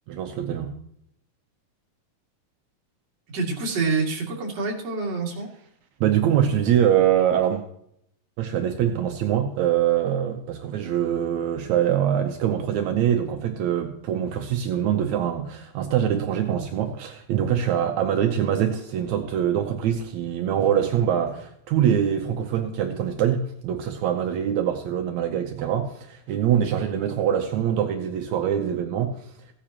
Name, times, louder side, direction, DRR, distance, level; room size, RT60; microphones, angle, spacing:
voice 1, 0.1-0.7 6.0-7.6 8.4-29.3, right 9 dB, 80° right, 4 dB, 1.7 m, -24 dB
voice 2, 3.3-5.5, right 4 dB, 50° right, -1 dB, 3.2 m, -27 dB
16.0 x 10.0 x 2.9 m, 0.73 s
omnidirectional pair, 4.1 m